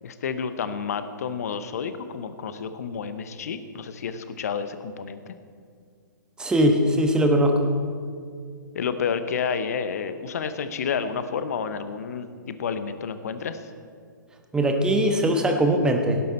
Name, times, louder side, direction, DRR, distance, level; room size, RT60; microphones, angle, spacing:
voice 1, 0.0-5.3 8.7-13.6, left 6 dB, 50° left, 11 dB, 0.8 m, -30 dB
voice 2, 6.4-7.6 14.5-16.2, right 1 dB, 5° right, 4 dB, 1.2 m, -20 dB
17.5 x 10.5 x 4.4 m, 2.2 s
figure-of-eight pair, 120°, 11 cm